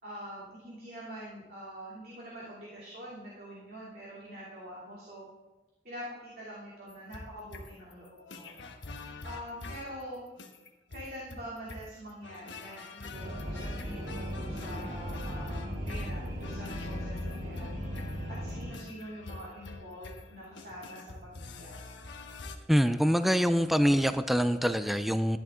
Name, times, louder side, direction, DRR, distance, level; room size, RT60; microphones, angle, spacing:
voice 1, 0.0-5.3 5.8-8.7 9.2-10.2 10.9-21.8, equal, 55° right, -6 dB, 2.8 m, -45 dB
sound 1, 6.9-22.6, left 3 dB, 90° left, 1.2 m, -46 dB
sound 2, 13.1-18.7, equal, 90° right, 3.0 m, -37 dB
voice 2, 22.7-25.4, equal, ahead, 10 dB, 0.4 m, -25 dB
13.0 x 10.5 x 3.7 m, 1.1 s
head